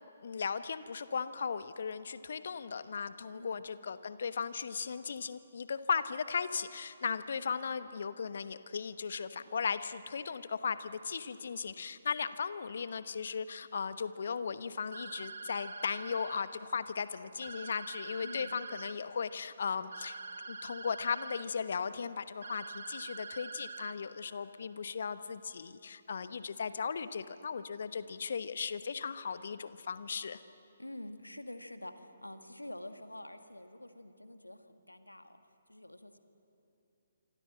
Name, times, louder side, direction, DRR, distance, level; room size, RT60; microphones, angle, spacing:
voice 1, 0.2-20.2 20.5-30.4, left 6 dB, 55° left, 13 dB, 1.1 m, -37 dB
sound 1, 14.9-16.4 17.4-18.9 19.9-21.4 22.4-23.9, right 4 dB, 60° right, 1.3 m, -45 dB
voice 2, 18.2-18.5 30.8-35.4 35.7-36.2, left 1 dB, 85° left, 8 dB, 1.7 m, -47 dB
27.0 x 25.0 x 7.7 m, 2.8 s
figure-of-eight pair, 135°, 0 cm